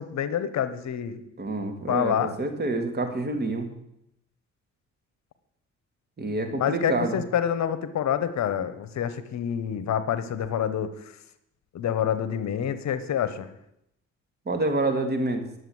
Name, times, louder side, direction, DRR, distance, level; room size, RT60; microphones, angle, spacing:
voice 1, 0.0-1.2 1.9-2.3 6.5-10.9 11.7-13.5, left 9 dB, 65° left, 12 dB, 1.1 m, -27 dB
voice 2, 1.4-3.7 6.2-7.2 14.5-15.4, right 2 dB, 35° right, 5 dB, 2.2 m, -27 dB
10.5 x 7.8 x 7.8 m, 0.79 s
cardioid pair, 90°, 30 cm